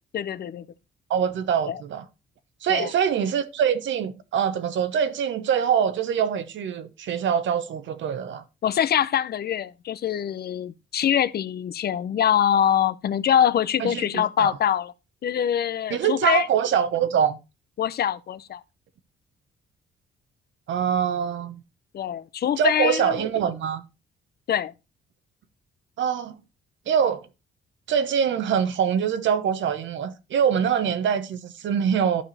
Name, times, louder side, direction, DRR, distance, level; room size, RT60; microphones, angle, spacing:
voice 1, 0.1-0.7 1.7-1.8 2.7-2.9 8.6-14.9 15.2-16.5 17.8-18.6 21.9-23.3 24.5-24.7, left 9 dB, 55° left, 0.6 m, -24 dB
voice 2, 1.1-2.0 2.6-8.4 13.8-14.6 15.9-17.4 20.7-21.6 22.6-23.8 26.0-26.3 26.9-27.3 27.9-32.2, right 8 dB, 70° right, 1.0 m, -24 dB
12.0 x 4.9 x 4.1 m
cardioid pair, 90°, 20 cm